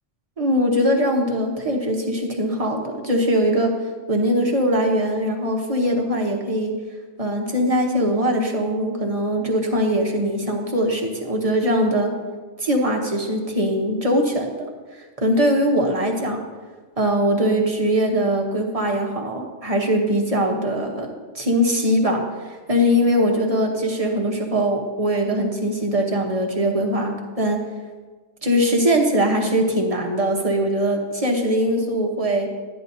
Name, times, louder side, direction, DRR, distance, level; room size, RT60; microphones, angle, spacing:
voice 1, 0.4-3.7 4.1-6.7 7.2-12.1 12.6-16.4 17.0-21.1 21.3-27.6 28.4-32.5, equal, 35° right, 1 dB, 1.0 m, -21 dB
11.5 x 9.9 x 2.7 m, 1.4 s
omnidirectional pair, 1.2 m